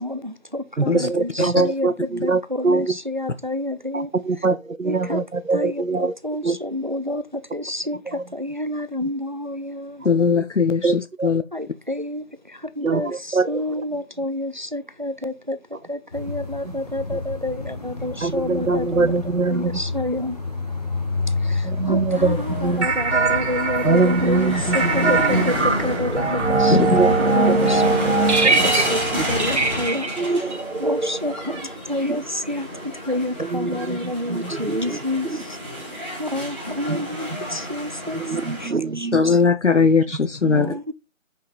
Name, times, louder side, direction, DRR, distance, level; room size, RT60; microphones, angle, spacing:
voice 1, 0.0-1.9 2.2-4.1 4.8-5.2 5.5-10.0 11.5-12.3 12.8-15.6 15.9-19.1 19.5-20.4 21.4-29.0 29.3-30.1 30.8-35.3 36.2-38.2 38.6-39.4 40.5-40.9, left 1 dB, 35° right, 0.5 m, -29 dB
voice 2, 0.8-3.0 3.9-6.1 6.4-6.6 8.1-8.2 9.0-9.1 10.0-10.3 10.8-11.3 12.8-13.8 16.6-16.8 17.1-17.2 18.2-19.8 21.6-22.9 23.8-25.7 26.8-27.1 27.5-27.7 28.4-28.9 29.2-29.3 30.2-31.0 32.1-32.2 33.4-35.4 36.9-37.2 38.1-39.2 40.4-40.8, right 4 dB, 80° right, 1.0 m, -24 dB
voice 3, 10.0-11.4 26.7-27.0 39.1-40.7, left 5 dB, 60° left, 0.8 m, -19 dB
sound 1, 16.1-29.8, left 2 dB, 30° left, 1.3 m, -30 dB
sound 2, 22.1-38.7, equal, 10° left, 1.2 m, -31 dB
sound 3, 22.8-31.7, right 3 dB, 60° right, 1.0 m, -22 dB
5.6 x 5.1 x 5.4 m
figure-of-eight pair, 160°, 40 cm